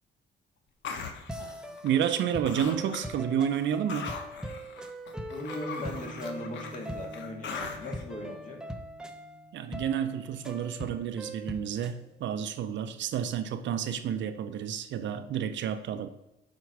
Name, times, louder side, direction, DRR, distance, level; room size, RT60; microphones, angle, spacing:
sound 1, 0.8-2.2 2.5-3.2 3.5-8.0, left 5 dB, 70° left, 0.9 m, -41 dB
sound 2, 1.3-12.0, right 1 dB, 5° right, 0.8 m, -41 dB
voice 1, 1.8-4.1 9.5-16.1, right 9 dB, 70° right, 0.6 m, -30 dB
voice 2, 5.3-8.6, left 2 dB, 40° left, 2.0 m, -39 dB
Piano, 5.4-12.1, right 5 dB, 40° right, 0.8 m, -50 dB
7.2 x 4.6 x 4.6 m
cardioid pair, 90°, 20 cm